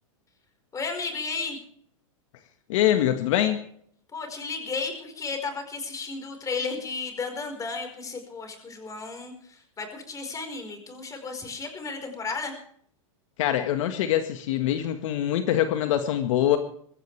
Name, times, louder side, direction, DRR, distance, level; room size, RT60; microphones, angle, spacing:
voice 1, 0.7-1.6 4.1-12.5, left 4 dB, 20° left, 5 dB, 4.8 m, -33 dB
voice 2, 2.7-3.6 13.4-16.6, left 11 dB, 65° left, 7 dB, 1.7 m, -24 dB
23.0 x 15.0 x 3.4 m, 0.64 s
hypercardioid pair, 120°, 18 cm